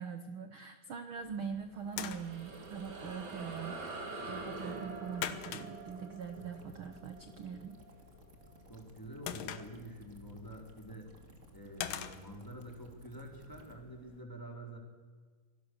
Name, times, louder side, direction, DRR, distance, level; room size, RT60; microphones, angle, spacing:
voice 1, 0.0-3.8 4.3-7.8, right 6 dB, 75° right, 9 dB, 1.1 m, -42 dB
sound 1, 1.2-14.2, left 10 dB, 75° left, 2.6 m, -47 dB
sound 2, 1.8-8.6, right 3 dB, 60° right, 4.6 m, -45 dB
sound 3, 1.9-13.7, right 2 dB, 25° right, 2.2 m, -61 dB
voice 2, 8.7-11.1 11.5-14.8, right 1 dB, 5° left, 1 dB, 4.2 m, -47 dB
26.5 x 19.0 x 6.6 m, 1.5 s
omnidirectional pair, 4.0 m